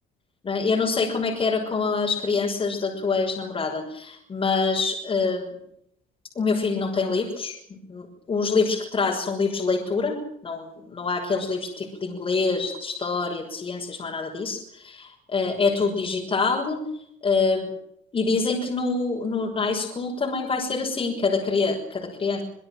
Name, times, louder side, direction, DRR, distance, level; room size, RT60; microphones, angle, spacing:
voice 1, 0.4-5.5 6.3-10.1 10.4-16.8 17.2-17.7 18.1-22.4, left 4 dB, 30° left, -1 dB, 6.2 m, -25 dB
24.5 x 20.0 x 7.6 m, 0.72 s
cardioid pair, 110°, 17 cm